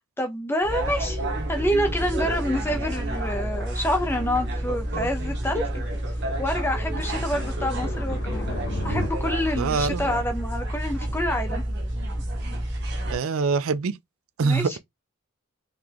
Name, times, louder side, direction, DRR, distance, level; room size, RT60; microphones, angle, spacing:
voice 1, 0.2-1.2 1.5-5.8 6.4-8.5 8.8-11.6 14.4-14.8, equal, 10° left, 0.7 m, -27 dB
sound 1, 0.6-13.2, right 1 dB, 55° right, 1.1 m, -29 dB
sound 2, 3.5-9.1, left 1 dB, 55° left, 0.8 m, -38 dB
voice 2, 9.6-10.1 13.1-14.0 14.4-14.7, right 4 dB, 75° right, 0.4 m, -24 dB
3.9 x 3.2 x 2.9 m
head